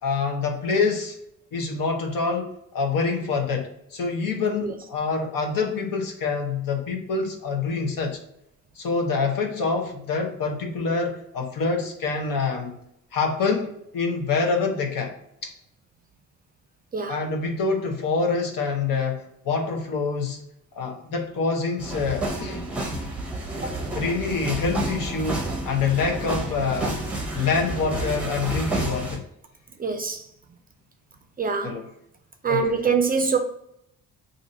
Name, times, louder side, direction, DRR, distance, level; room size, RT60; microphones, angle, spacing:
voice 1, 0.0-1.2 1.5-8.2 8.8-12.8 13.1-15.1 15.4-15.5 17.1-20.4 20.7-22.6 23.9-27.0 27.3-29.2 31.6-31.8 32.5-32.9, left 4 dB, 70° left, 0.8 m, -26 dB
sound 1, 21.8-29.2, right 2 dB, 5° right, 0.8 m, -30 dB
voice 2, 29.8-30.2 31.4-31.8 32.4-33.4, right 5 dB, 25° right, 0.4 m, -24 dB
2.6 x 2.6 x 4.1 m
cardioid pair, 100°, 35 cm